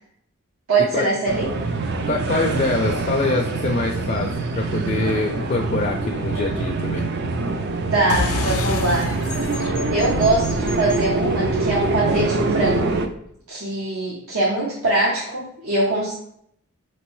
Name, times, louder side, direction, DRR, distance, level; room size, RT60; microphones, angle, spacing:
voice 1, 0.7-1.5 7.9-9.1 9.9-13.0 13.5-16.1, right 2 dB, 75° right, -4 dB, 0.8 m, -22 dB
sound 1, 1.3-13.1, right 3 dB, 50° right, 0.4 m, -24 dB
voice 2, 2.0-7.1, left 3 dB, 35° left, 1 dB, 0.4 m, -24 dB
sound 2, 8.1-13.0, left 3 dB, 85° left, 0.6 m, -30 dB
5.0 x 3.0 x 3.1 m, 0.69 s
head